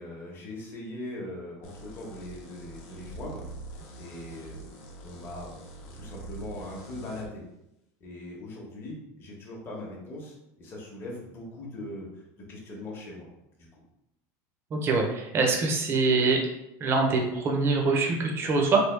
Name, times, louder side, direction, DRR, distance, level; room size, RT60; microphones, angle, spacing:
voice 1, 0.0-3.4 4.0-4.7 5.0-5.6 5.9-7.4 8.0-12.1 12.5-13.3 13.6-13.7, left 1 dB, 25° left, -3 dB, 0.9 m, -40 dB
sound 1, 1.6-7.3, right 2 dB, 70° left, 0.8 m, -44 dB
voice 2, 14.7-16.4 16.8-18.8, right 3 dB, 30° right, 1 dB, 0.6 m, -24 dB
3.3 x 2.3 x 3.2 m, 0.86 s
supercardioid pair, 145°, 8 cm